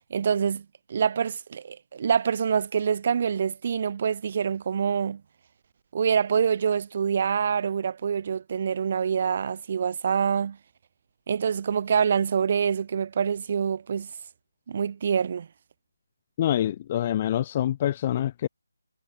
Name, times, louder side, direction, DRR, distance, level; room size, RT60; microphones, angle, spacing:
voice 1, 0.1-0.6 0.9-5.2 5.9-10.6 11.3-14.1 14.7-15.5, right 7 dB, 30° right, 3.7 m, -25 dB
voice 2, 16.4-18.5, left 11 dB, 20° left, 0.8 m, -26 dB
figure-of-eight pair, 175°, 0 cm